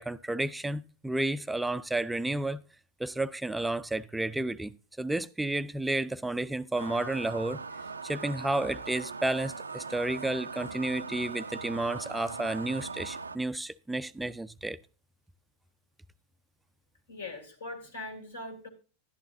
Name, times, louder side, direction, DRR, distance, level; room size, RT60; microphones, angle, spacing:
voice 1, 0.0-2.6 3.0-7.6 8.0-14.8, right 2 dB, 5° right, 0.4 m, -31 dB
sound 1, 6.7-13.4, right 4 dB, 85° right, 0.4 m, -40 dB
voice 2, 17.1-18.7, left 2 dB, 75° left, 2.5 m, -41 dB
11.5 x 11.0 x 2.6 m
figure-of-eight pair, 90°, 0 cm